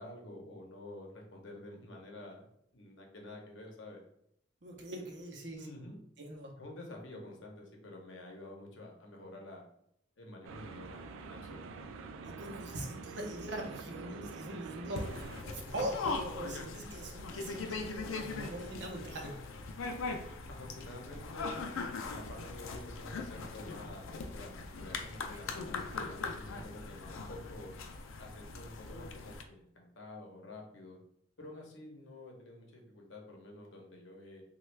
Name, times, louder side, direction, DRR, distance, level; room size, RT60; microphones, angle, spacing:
voice 1, 0.0-2.5 2.7-4.0 5.6-6.0 6.6-9.6 10.2-11.7 15.6-15.9 20.5-21.6 22.0-27.7 28.2-31.0 31.4-34.4, left 1 dB, 70° left, 0 dB, 0.8 m, -49 dB
voice 2, 4.6-5.7 6.2-6.5 12.2-19.3 25.8-26.0, right 1 dB, 60° right, 1 dB, 0.7 m, -42 dB
sound 1, 10.4-15.4, right 4 dB, 80° right, 0.3 m, -46 dB
sound 2, 15.0-29.4, left 4 dB, 85° left, 0.4 m, -41 dB
3.1 x 2.3 x 3.2 m, 0.73 s
head